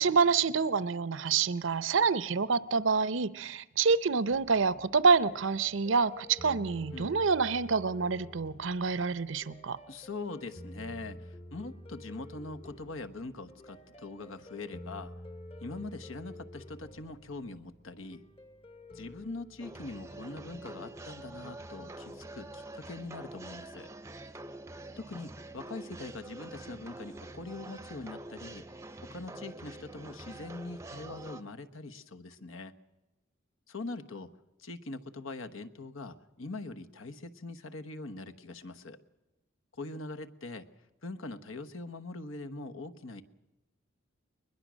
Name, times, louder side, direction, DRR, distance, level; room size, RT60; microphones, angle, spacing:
voice 1, 0.0-9.8, right 5 dB, 65° right, 16 dB, 0.7 m, -27 dB
sound 1, 4.3-21.0, left 1 dB, 30° left, 1.1 m, -50 dB
voice 2, 9.9-15.1 15.6-18.2 18.9-23.9 25.0-28.7 29.0-32.7 33.7-34.3 34.6-39.0 39.7-40.7 41.0-43.2, left 3 dB, 75° left, 7 dB, 1.2 m, -42 dB
sound 2, 19.6-31.4, right 2 dB, 15° right, 0.7 m, -46 dB
21.5 x 21.0 x 6.3 m, 1.0 s
head